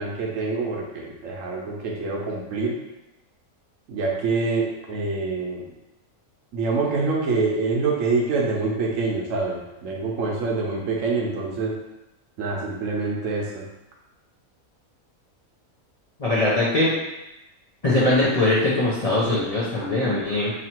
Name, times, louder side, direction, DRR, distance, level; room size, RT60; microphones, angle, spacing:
voice 1, 0.0-2.8 3.9-5.7 6.5-11.7 12.4-13.6, right 3 dB, 70° right, -2 dB, 1.0 m, -26 dB
voice 2, 16.2-16.9 17.8-20.5, left 2 dB, 35° left, -8 dB, 0.6 m, -21 dB
3.0 x 2.8 x 4.3 m, 0.96 s
omnidirectional pair, 1.5 m